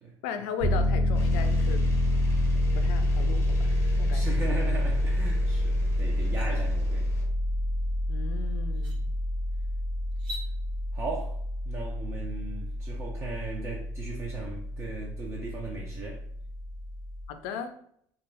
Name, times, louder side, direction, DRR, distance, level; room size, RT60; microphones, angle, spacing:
voice 1, 0.2-2.0 2.7-4.6 8.1-9.1 17.3-17.8, left 7 dB, 80° left, 8 dB, 0.4 m, -37 dB
Piano, 0.6-17.3, left 1 dB, 80° right, 1.0 m, -28 dB
sound 1, 1.1-7.3, left 3 dB, 30° left, 0.7 m, -40 dB
voice 2, 4.1-7.1 10.9-16.2, right 3 dB, 25° right, -2 dB, 0.4 m, -38 dB
sound 2, 5.5-5.6 6.0-6.5 8.1-8.2 8.7-9.0 10.1-10.5, left 1 dB, 55° right, 0.8 m, -42 dB
2.3 x 2.0 x 3.2 m, 0.65 s
cardioid pair, 120°, 9 cm